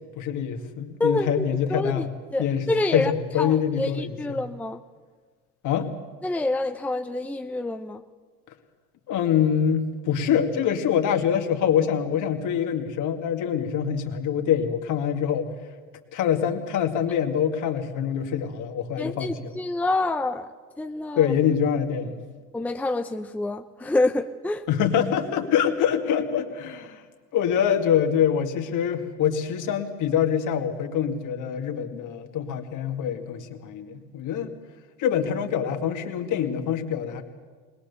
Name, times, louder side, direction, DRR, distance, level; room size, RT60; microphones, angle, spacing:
voice 1, 0.2-2.7 2.9-4.4 5.6-5.9 9.1-15.5 16.1-19.5 21.2-22.2 24.7-27.0 27.3-34.5 35.0-37.2, left 8 dB, 55° left, 5 dB, 2.2 m, -25 dB
voice 2, 1.0-1.4 1.7-2.1 2.3-3.1 3.4-4.8 6.2-8.0 19.0-20.5 20.8-21.3 22.5-24.6, left 2 dB, 5° left, 7 dB, 0.6 m, -27 dB
20.5 x 19.5 x 7.0 m, 1.5 s
supercardioid pair, 100°, 35 cm